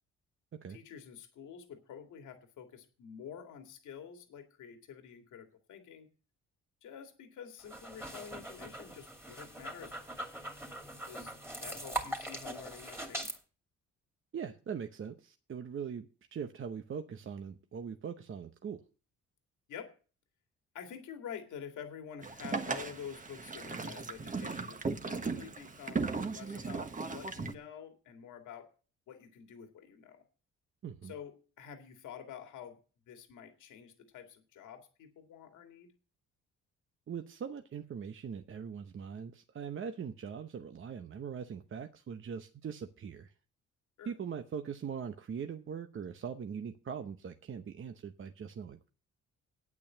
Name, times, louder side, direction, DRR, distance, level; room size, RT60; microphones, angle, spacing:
voice 1, 0.7-6.1 6.8-10.3 11.1-11.3 11.6-13.3 19.7-19.9 20.7-28.7 29.1-30.2 31.0-32.8 33.1-35.9 44.0-44.1, left 8 dB, 80° left, 5 dB, 2.2 m, -48 dB
sound 1, 7.6-13.4, right 1 dB, 10° right, 2.5 m, -41 dB
voice 2, 14.3-18.8 30.8-31.1 37.1-43.3 44.0-48.9, right 7 dB, 40° right, 7 dB, 0.9 m, -41 dB
Boat Water vehicle, 22.2-27.5, right 4 dB, 25° right, 1.2 m, -37 dB
8.9 x 8.4 x 7.3 m, 0.37 s
cardioid pair, 90°, 30 cm